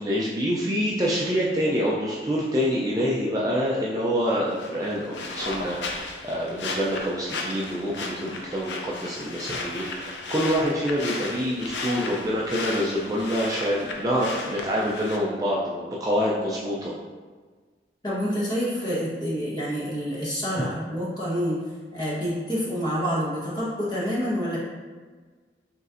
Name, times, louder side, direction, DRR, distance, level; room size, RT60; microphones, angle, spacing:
voice 1, 0.0-16.9 20.6-20.7, equal, 20° right, -5 dB, 0.4 m, -26 dB
sound 1, 4.5-15.2, left 3 dB, 90° left, 0.5 m, -35 dB
voice 2, 18.0-21.6 21.9-24.6, equal, 25° left, -7 dB, 1.1 m, -27 dB
5.3 x 3.1 x 2.5 m, 1.4 s
head